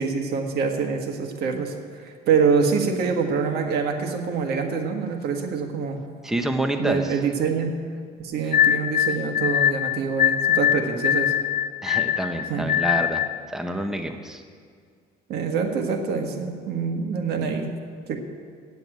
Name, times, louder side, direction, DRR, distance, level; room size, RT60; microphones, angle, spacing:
voice 1, 0.0-6.0 6.8-7.7 8.2-11.3 12.5-12.7 15.3-17.7 18.1-18.2, right 5 dB, 70° right, 4 dB, 1.5 m, -25 dB
voice 2, 6.2-7.2 11.8-13.2 13.5-14.4, right 1 dB, 5° right, 6 dB, 0.8 m, -27 dB
sound 1, 8.5-13.4, left 10 dB, 50° left, 0.6 m, -22 dB
9.0 x 8.1 x 9.2 m, 2.1 s
cardioid pair, 110°, 17 cm